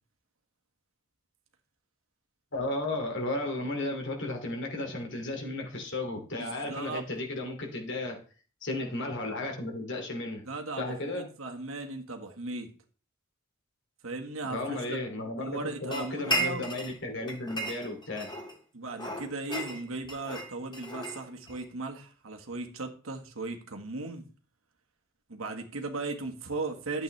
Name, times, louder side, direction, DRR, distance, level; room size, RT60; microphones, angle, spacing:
voice 1, 2.5-8.2 8.6-10.4 10.8-11.3 14.5-18.3, left 2 dB, 60° left, 2 dB, 2.8 m, -34 dB
voice 2, 6.4-7.0 10.4-12.7 14.0-15.0 15.4-16.6 18.7-24.2 25.3-27.0, right 3 dB, 90° right, 4 dB, 1.6 m, -37 dB
sound 1, 15.9-17.0 17.3-18.6 19.0-21.6, equal, 20° left, 2.1 m, -34 dB
12.0 x 8.0 x 3.3 m, 0.39 s
head